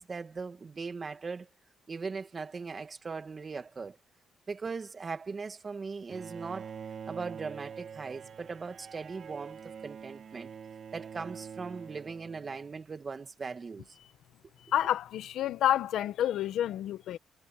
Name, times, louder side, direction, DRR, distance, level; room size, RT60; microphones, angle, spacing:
voice 1, 0.0-1.5 1.9-4.0 4.5-6.7 7.1-10.5 10.9-13.9, right 4 dB, 35° right, 2.0 m, -39 dB
Bowed string instrument, 6.1-12.9, right 7 dB, 55° right, 2.8 m, -45 dB
voice 2, 14.7-17.2, left 11 dB, 80° left, 1.3 m, -29 dB
cardioid pair, 90°, 0 cm